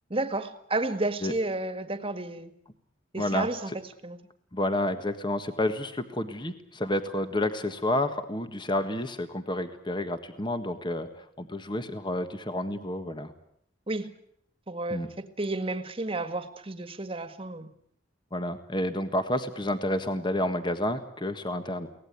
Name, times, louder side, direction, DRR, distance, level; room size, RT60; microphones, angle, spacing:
voice 1, 0.1-2.5 3.1-3.7 4.0-4.2 13.9-14.1 14.7-17.7, right 2 dB, 30° right, 1.8 m, -31 dB
voice 2, 3.2-3.5 4.5-13.3 14.9-15.1 18.3-21.9, left 1 dB, 25° left, 1.6 m, -30 dB
24.0 x 18.5 x 9.5 m
head